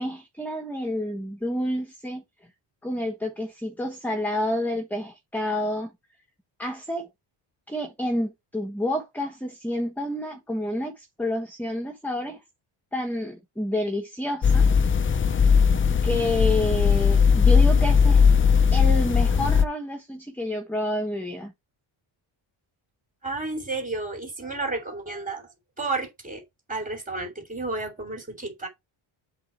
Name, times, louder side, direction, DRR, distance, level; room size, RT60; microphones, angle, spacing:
voice 1, 0.0-2.2 2.8-5.9 6.6-7.1 7.7-12.4 12.9-14.7 16.0-18.2 18.7-21.5, left 1 dB, 5° left, 1.2 m, -29 dB
sound 1, 14.4-19.6, left 6 dB, 25° left, 0.6 m, -18 dB
voice 2, 23.2-25.5 25.8-26.4 26.7-28.7, right 3 dB, 15° right, 3.1 m, -31 dB
7.8 x 4.2 x 4.4 m
cardioid pair, 150°, 49 cm